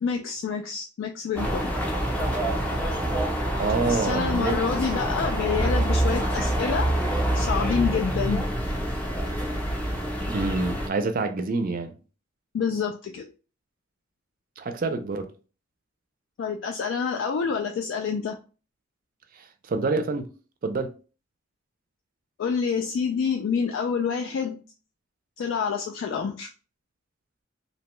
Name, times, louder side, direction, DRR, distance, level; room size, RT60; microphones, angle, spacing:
voice 1, 0.0-1.7 3.9-6.9 7.3-8.4 12.5-13.3 16.4-18.4 22.4-24.6 25.4-26.5, left 6 dB, 75° left, 0.3 m, -27 dB
sound 1, 1.4-10.9, right 1 dB, 5° left, 0.5 m, -26 dB
voice 2, 3.6-4.6 10.2-11.9 14.6-15.3 19.4-20.3 20.6-20.9, right 3 dB, 45° right, 0.4 m, -27 dB
2.7 x 2.2 x 2.9 m
head